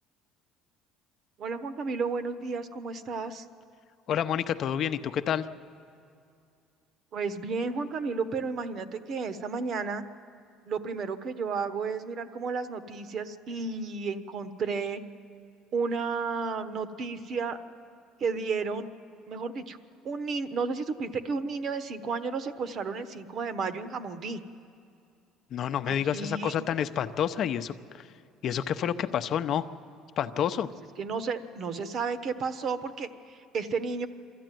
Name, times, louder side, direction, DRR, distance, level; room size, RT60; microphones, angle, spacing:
voice 1, 1.4-3.4 7.1-10.0 10.7-15.0 15.7-17.6 18.2-18.9 19.3-19.8 20.0-24.4 25.9-26.7 31.0-34.1, right 4 dB, 50° right, 12 dB, 1.1 m, -32 dB
voice 2, 4.1-5.5 25.5-28.1 28.4-29.6 30.2-30.7, left 9 dB, 55° left, 10 dB, 0.7 m, -29 dB
23.0 x 13.5 x 9.2 m, 2.4 s
cardioid pair, 105°, 0 cm